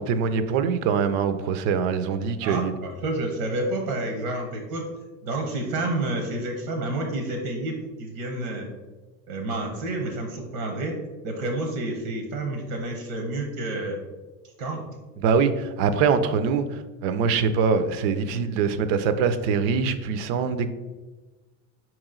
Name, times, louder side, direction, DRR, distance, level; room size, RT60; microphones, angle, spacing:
voice 1, 0.0-2.7 15.2-20.7, right 6 dB, 65° right, 0.5 m, -23 dB
voice 2, 2.4-4.9 5.2-8.7 9.3-11.0 11.2-14.0 14.6-14.9, right 2 dB, 80° right, 1.0 m, -29 dB
4.7 x 3.0 x 3.7 m
supercardioid pair, 120°, 41 cm